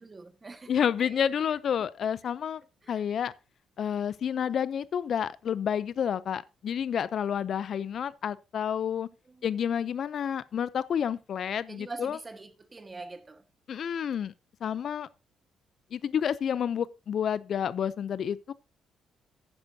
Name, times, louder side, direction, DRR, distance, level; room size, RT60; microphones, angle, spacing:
voice 1, 0.0-1.2 2.8-3.0 9.3-9.5 11.7-13.4, right 3 dB, 25° right, 1.4 m, -44 dB
voice 2, 0.7-2.6 2.9-3.3 3.8-9.1 9.4-12.2 13.7-14.3 14.6-15.1 15.9-18.5, left 8 dB, 55° left, 0.4 m, -29 dB
10.5 x 9.7 x 2.7 m
cardioid pair, 115°, 0 cm